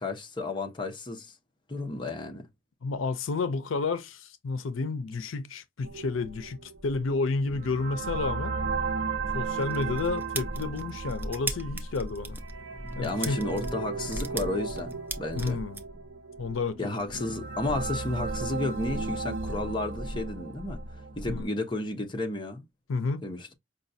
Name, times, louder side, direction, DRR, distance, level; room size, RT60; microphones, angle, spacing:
voice 1, 0.0-1.3 1.7-2.5 13.0-15.6 16.8-20.8 21.2-22.7 23.2-23.5, left 2 dB, 25° left, 0.7 m, -32 dB
voice 2, 2.8-8.6 9.3-12.4 13.0-13.4 15.4-15.8 16.4-16.8 21.3-21.5 22.9-23.2, left 4 dB, 75° left, 0.5 m, -31 dB
sound 1, 5.8-21.4, right 4 dB, 60° right, 0.7 m, -35 dB
sound 2, 9.6-15.8, right 2 dB, 10° right, 0.5 m, -37 dB
5.2 x 2.2 x 2.6 m
head